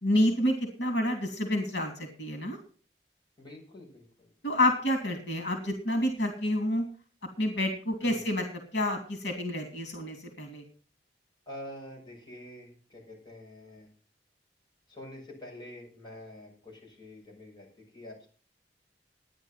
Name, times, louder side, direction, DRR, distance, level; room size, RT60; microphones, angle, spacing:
voice 1, 0.0-2.6 4.4-6.8 7.4-10.6, left 1 dB, 80° left, 5 dB, 3.0 m, -29 dB
voice 2, 3.4-4.3 8.0-8.2 11.5-13.9 14.9-17.7 17.9-18.3, left 1 dB, 25° left, -3 dB, 6.5 m, -46 dB
12.5 x 10.0 x 5.7 m, 0.42 s
head